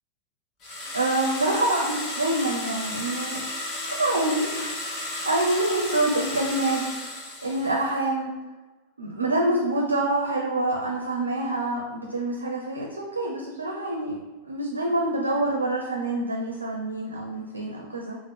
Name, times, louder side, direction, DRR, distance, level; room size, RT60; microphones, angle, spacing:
sound 1, 0.6-7.9, left 1 dB, 30° left, 0.9 m, -33 dB
voice 1, 0.9-3.4 3.9-6.8 7.4-8.3 9.0-14.2 14.4-18.2, right 2 dB, 75° right, 0 dB, 0.4 m, -26 dB
3.7 x 2.0 x 3.6 m, 1.2 s
figure-of-eight pair, 90°, 0 cm